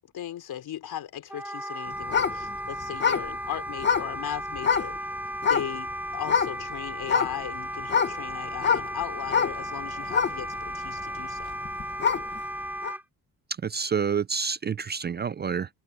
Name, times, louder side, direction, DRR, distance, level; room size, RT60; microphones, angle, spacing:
voice 1, 0.1-5.0 5.4-11.6, left 11 dB, 75° left, 4.0 m, -37 dB
Wind instrument woodwind instrument, 1.3-13.0, right 1 dB, 5° right, 5.5 m, -35 dB
sound 1, 2.0-5.0 5.4-5.9 6.2-6.6 7.0-12.4 12.8-12.9, left 6 dB, 30° left, 0.7 m, -26 dB
voice 2, 13.6-15.7, right 6 dB, 30° right, 0.4 m, -28 dB
cardioid pair, 95°, 38 cm